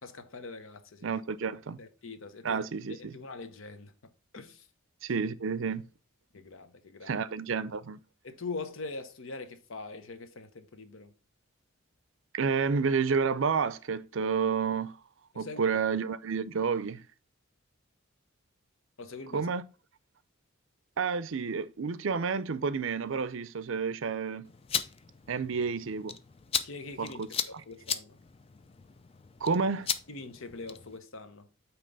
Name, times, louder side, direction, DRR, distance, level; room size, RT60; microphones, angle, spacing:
voice 1, 0.0-1.2 1.8-2.6 2.9-4.7 5.2-5.3 6.3-7.2 8.2-11.1 15.3-15.8 19.0-19.5 26.6-27.2 27.5-28.2 30.1-31.5, left 3 dB, 65° left, 0.8 m, -43 dB
voice 2, 1.0-1.8 2.4-3.1 5.0-5.8 7.0-8.0 12.3-15.0 15.4-17.0 19.3-19.6 21.0-24.5 25.3-26.2 27.0-27.3 29.4-29.9, right 5 dB, 60° right, 0.5 m, -30 dB
sound 1, 24.4-31.0, left 7 dB, 25° left, 0.4 m, -37 dB
8.7 x 3.0 x 5.2 m
head